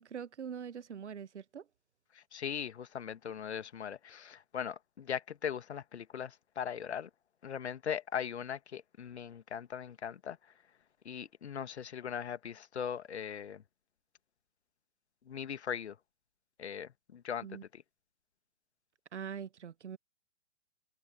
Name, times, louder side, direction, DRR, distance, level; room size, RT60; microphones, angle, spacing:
voice 1, 0.0-1.6 17.4-17.6 19.1-20.0, right 7 dB, 65° right, 1.3 m, -43 dB
voice 2, 2.1-7.1 7.4-10.4 11.0-13.6 15.3-15.9 16.6-17.5 17.7-17.8, left 8 dB, 60° left, 1.7 m, -39 dB
figure-of-eight pair, 120°, 37 cm